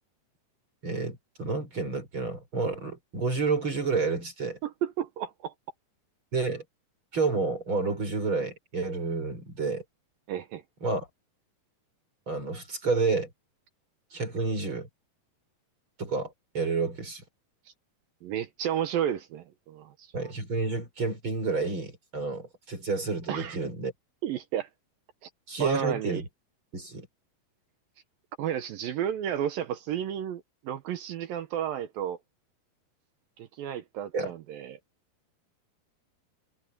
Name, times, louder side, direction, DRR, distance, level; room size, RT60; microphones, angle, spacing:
voice 1, 0.8-4.6 6.3-6.6 7.1-9.8 10.8-11.1 12.3-13.3 14.1-14.9 16.0-17.2 20.1-23.9 25.5-26.2 26.7-27.1 34.1-34.3, right 4 dB, 30° right, 5.7 m, -30 dB
voice 2, 4.6-5.5 10.3-10.6 18.2-20.1 23.3-23.6 24.2-24.7 25.2-25.3 25.6-26.2 28.4-32.2 33.4-34.8, right 10 dB, 70° right, 2.4 m, -32 dB
omnidirectional pair, 4.8 m